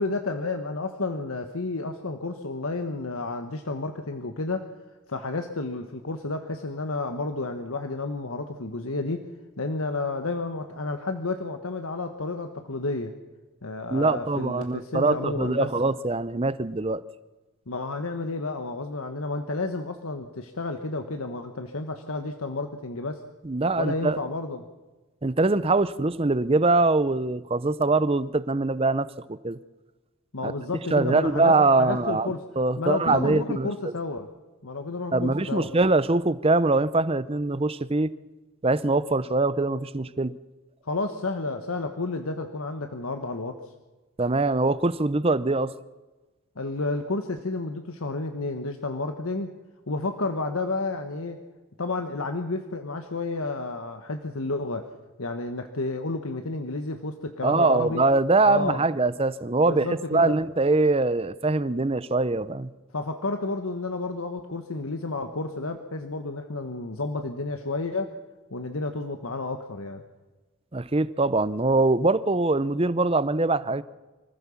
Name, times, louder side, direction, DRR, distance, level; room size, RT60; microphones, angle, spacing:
voice 1, 0.0-4.7 5.1-9.2 9.6-13.1 13.6-15.7 17.7-23.2 23.8-24.6 30.3-32.4 32.8-34.3 34.6-35.7 40.8-43.7 46.6-49.5 49.9-51.4 51.8-54.9 55.2-58.0 58.4-58.8 59.6-60.4 62.9-68.1 68.5-70.0, left 3 dB, 75° left, 6 dB, 1.3 m, -31 dB
voice 2, 13.9-17.0 23.4-24.2 25.2-29.6 30.4-30.5 30.9-33.9 35.1-38.1 38.6-40.3 44.2-45.7 57.4-62.7 70.7-73.8, right 3 dB, 25° right, 16 dB, 0.6 m, -23 dB
25.0 x 15.0 x 7.2 m, 1.2 s
head